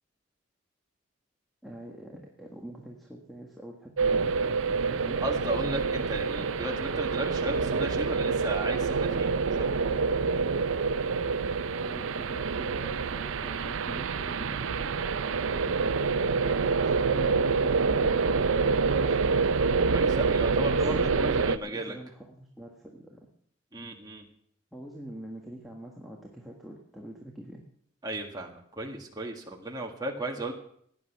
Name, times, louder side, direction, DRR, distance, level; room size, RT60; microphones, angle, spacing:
voice 1, 1.6-5.2 11.8-16.3 16.8-19.5 20.7-23.3 24.7-27.6, right 1 dB, ahead, -2 dB, 1.6 m, -44 dB
sound 1, 4.0-21.6, right 4 dB, 80° right, 0.6 m, -27 dB
voice 2, 5.2-9.8 19.9-22.0 23.7-24.3 28.0-30.5, right 1 dB, 20° right, 1 dB, 1.8 m, -35 dB
17.0 x 10.0 x 6.0 m, 0.66 s
head